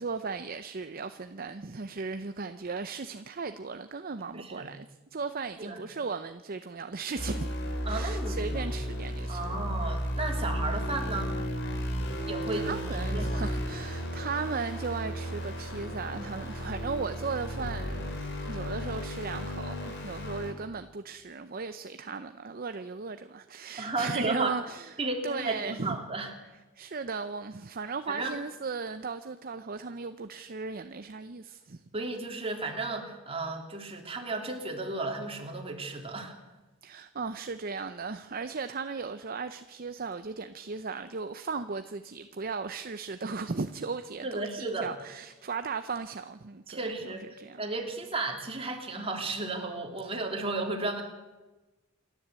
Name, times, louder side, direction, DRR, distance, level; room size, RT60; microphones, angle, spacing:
voice 1, 0.0-7.5 7.8-9.4 12.5-24.9 25.2-26.0 26.8-31.8 36.8-47.6, right 4 dB, 45° right, 0.7 m, -36 dB
voice 2, 4.3-4.7 5.6-5.8 7.8-8.6 9.3-11.3 12.2-12.8 13.1-13.4 23.8-24.5 25.0-26.3 28.1-28.3 31.9-36.3 44.2-44.9 46.7-51.0, right 2 dB, 30° right, 3.1 m, -34 dB
sound 1, 7.2-20.5, equal, 55° left, 3.4 m, -34 dB
28.0 x 12.0 x 8.2 m
head